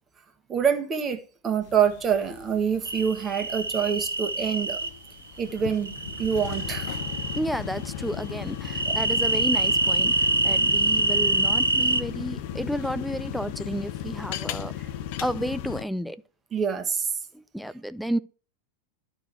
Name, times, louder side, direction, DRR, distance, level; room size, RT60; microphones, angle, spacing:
voice 1, 0.5-4.8 5.4-6.9 8.9-9.0 14.8-14.9 16.5-17.1, right 7 dB, 25° right, 1.6 m, -26 dB
sound 1, 1.6-15.8, left 11 dB, 45° left, 0.7 m, -36 dB
sound 2, 2.9-4.9 5.9-7.4 8.6-12.0, right 3 dB, 75° right, 0.9 m, -25 dB
sound 3, 5.9-14.0, left 3 dB, 70° left, 1.9 m, -45 dB
voice 2, 7.4-14.7 15.2-16.2 17.3-18.2, equal, ahead, 0.5 m, -31 dB
11.0 x 5.1 x 6.5 m
figure-of-eight pair, 90°, 0 cm